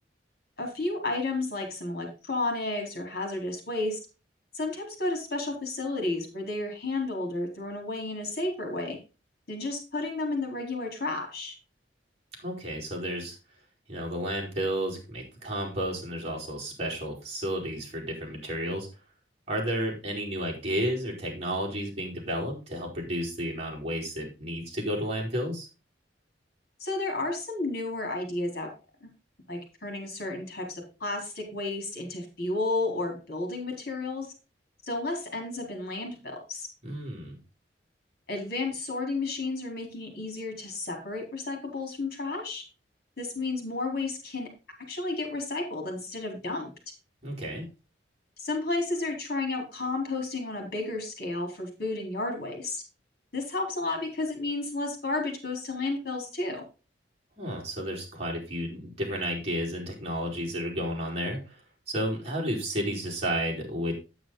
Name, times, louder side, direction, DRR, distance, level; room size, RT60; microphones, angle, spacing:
voice 1, 0.6-4.0 4.5-9.0 9.5-11.5 26.8-28.7 29.0-29.1 29.5-34.3 34.9-36.7 38.3-42.6 43.2-44.5 44.9-46.7 48.4-52.8 53.3-56.6, left 2 dB, 55° left, 3 dB, 3.9 m, -32 dB
voice 2, 12.4-13.4 13.9-18.9 19.5-25.7 36.8-37.4 47.2-47.6 57.4-61.6 61.9-64.0, equal, 35° right, -3 dB, 4.7 m, -32 dB
9.1 x 8.8 x 3.9 m, 0.31 s
head